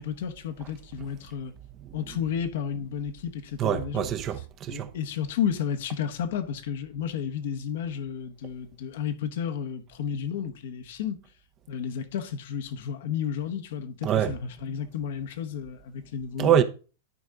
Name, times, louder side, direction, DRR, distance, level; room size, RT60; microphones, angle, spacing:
voice 1, 0.0-1.5 1.9-4.0 4.7-11.2 11.7-16.5, left 8 dB, 70° left, 1.2 m, -32 dB
voice 2, 3.6-4.9 14.0-14.3 16.4-16.6, right 9 dB, 35° right, 0.8 m, -24 dB
11.0 x 4.5 x 3.8 m
hypercardioid pair, 120°, 0 cm